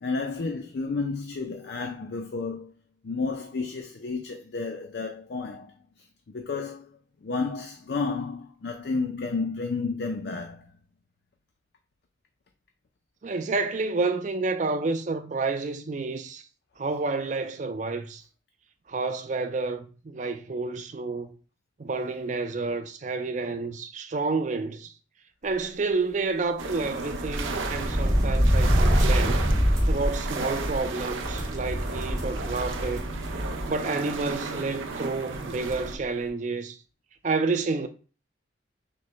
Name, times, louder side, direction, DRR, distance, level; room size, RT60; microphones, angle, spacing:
voice 1, 0.0-2.7 3.0-5.8 6.3-6.9 7.2-10.7, left 4 dB, 60° left, 0.4 m, -31 dB
voice 2, 13.2-16.4 16.8-18.2 18.9-21.4 21.8-24.9 25.4-29.5 29.9-33.1 33.7-36.8 37.2-37.9, right 3 dB, 40° right, 0.4 m, -29 dB
sound 1, 26.6-36.0, right 3 dB, 85° right, 0.6 m, -34 dB
sound 2, 27.0-33.8 34.1-34.2 35.3-35.4 35.6-35.9, equal, 15° right, 0.7 m, -25 dB
6.3 x 2.2 x 3.1 m
head